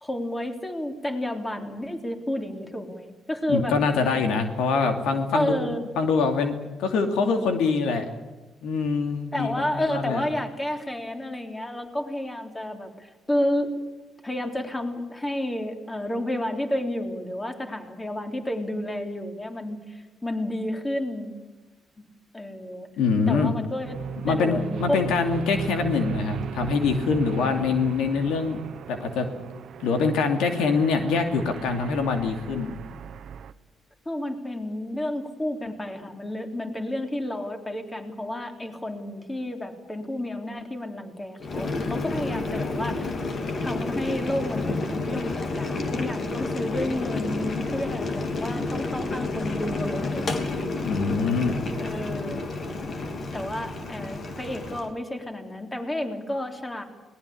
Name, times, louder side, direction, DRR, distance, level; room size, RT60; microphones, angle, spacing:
voice 1, 0.0-3.8 5.3-5.8 9.3-13.8 14.2-21.4 22.0-22.1 22.3-22.9 23.3-24.0 24.3-25.0 34.1-43.2 43.6-50.5 51.8-52.4 53.3-56.8, left 1 dB, 15° left, 4 dB, 3.5 m, -31 dB
voice 2, 3.5-6.5 6.8-8.1 8.6-10.2 23.0-23.6 24.2-28.6 28.9-29.3 29.8-32.7 50.8-51.5, left 4 dB, 90° left, 5 dB, 2.7 m, -24 dB
sound 1, 23.8-33.5, right 7 dB, 65° right, 1.0 m, -36 dB
Boiling, 41.4-54.9, left 3 dB, 45° left, 3.0 m, -30 dB
22.0 x 19.5 x 8.6 m, 1.2 s
cardioid pair, 90°, 0 cm